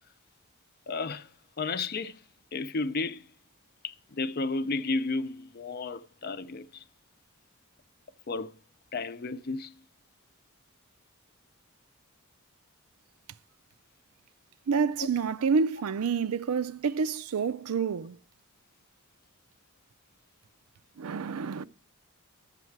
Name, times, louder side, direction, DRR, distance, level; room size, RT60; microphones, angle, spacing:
voice 1, 0.9-1.3 1.6-2.2 2.5-3.2 3.8-6.8 8.3-8.5 8.9-9.7 15.0-15.1, left 3 dB, 45° left, 0.5 m, -32 dB
voice 2, 14.7-18.2 21.0-21.6, right 5 dB, 80° right, 0.5 m, -28 dB
12.0 x 7.6 x 4.6 m
head